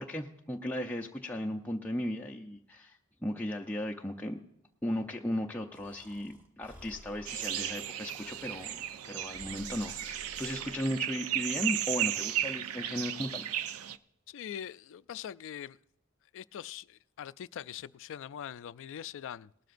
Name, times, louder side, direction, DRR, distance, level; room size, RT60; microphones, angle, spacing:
voice 1, 0.0-4.4 4.8-13.5, left 1 dB, 5° left, 0.5 m, -36 dB
Breathing, 5.7-10.8, equal, 10° right, 1.3 m, -55 dB
sound 1, 7.3-14.0, right 11 dB, 70° right, 0.5 m, -35 dB
voice 2, 14.3-15.8 16.3-19.5, left 9 dB, 60° left, 0.3 m, -42 dB
19.0 x 13.0 x 2.5 m
head